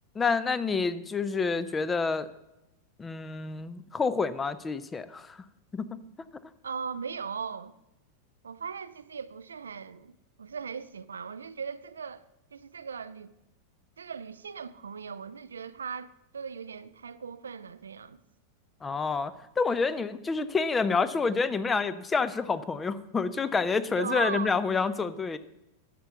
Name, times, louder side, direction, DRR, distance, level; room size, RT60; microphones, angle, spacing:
voice 1, 0.2-2.3 3.0-5.4 5.7-6.0 18.8-25.4, left 4 dB, 15° left, 0.5 m, -28 dB
voice 2, 6.6-7.7 8.4-10.1 10.4-12.2 12.5-13.3 14.0-18.2 23.9-24.5, right 6 dB, 70° right, 0.4 m, -38 dB
11.0 x 6.6 x 5.8 m
figure-of-eight pair, 90°, 0 cm